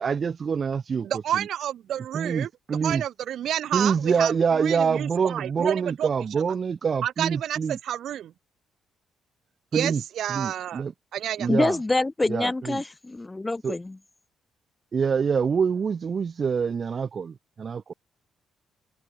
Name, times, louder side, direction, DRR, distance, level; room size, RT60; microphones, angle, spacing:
voice 1, 0.0-1.1 1.4-1.5 2.1-3.0 3.7-7.8 9.7-10.0 10.3-10.9 11.4-11.8 12.3-12.8 13.6-13.7 14.9-17.9, right 6 dB, 35° right, 0.8 m, -25 dB
voice 2, 1.0-2.5 2.8-6.1 7.0-8.3 9.7-10.8 11.1-11.5, right 11 dB, 60° right, 1.0 m, -30 dB
voice 3, 11.5-14.0, left 2 dB, 10° left, 0.6 m, -26 dB
cardioid pair, 170°, 0 cm